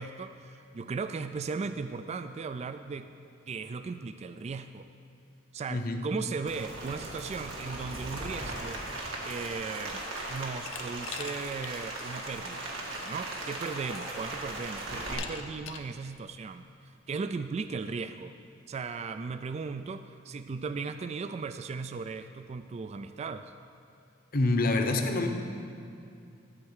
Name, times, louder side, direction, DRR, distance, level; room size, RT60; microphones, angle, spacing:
voice 1, 0.0-3.1 3.5-4.9 5.5-8.8 9.2-12.7 13.0-18.3 18.7-23.5, right 4 dB, 35° right, 10 dB, 0.3 m, -37 dB
voice 2, 5.7-6.0 24.3-25.3, left 2 dB, 50° left, 5 dB, 0.9 m, -26 dB
Rain, 6.5-15.1, right 2 dB, 80° right, 2.0 m, -38 dB
Glass, 10.7-11.8 12.2-12.3 13.4-13.5 13.9-14.4 15.1-15.9, left 7 dB, 85° left, 0.8 m, -42 dB
13.5 x 4.6 x 8.0 m, 2.5 s
head